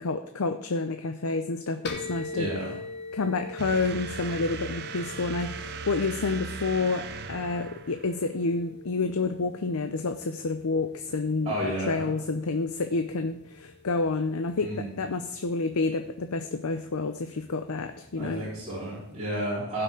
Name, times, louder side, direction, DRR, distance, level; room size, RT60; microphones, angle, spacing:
voice 1, 0.0-2.5 3.1-18.5, left 3 dB, 80° left, 8 dB, 0.7 m, -29 dB
sound 1, 1.9-19.2, left 3 dB, 50° left, 1.3 m, -45 dB
voice 2, 2.3-2.7 11.4-12.1 14.6-14.9 18.2-19.8, right 1 dB, 30° right, -9 dB, 4.4 m, -31 dB
sound 2, 3.6-8.3, right 5 dB, 45° right, 0.7 m, -38 dB
16.0 x 6.0 x 4.9 m, 0.86 s
head